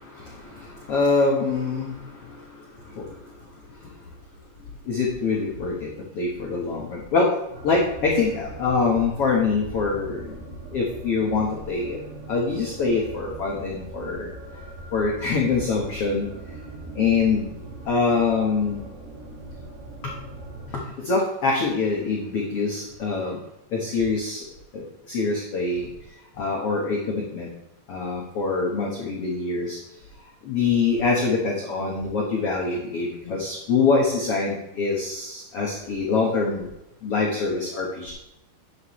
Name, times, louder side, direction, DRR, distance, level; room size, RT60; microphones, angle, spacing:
voice 1, 0.0-2.4 2.8-3.1 4.8-5.9 6.1-7.4 7.6-10.3 10.7-12.0 12.3-14.3 14.9-16.3 16.9-17.5 17.9-18.8 20.0-20.1 20.7-23.4 23.7-24.4 24.7-25.9 26.4-27.5 27.9-29.8 30.4-36.7 37.0-38.1, left 4 dB, 90° left, -2 dB, 1.3 m, -24 dB
sound 1, 7.5-20.7, right 1 dB, 75° right, 4.9 m, -40 dB
9.9 x 9.2 x 3.2 m, 0.89 s
omnidirectional pair, 5.0 m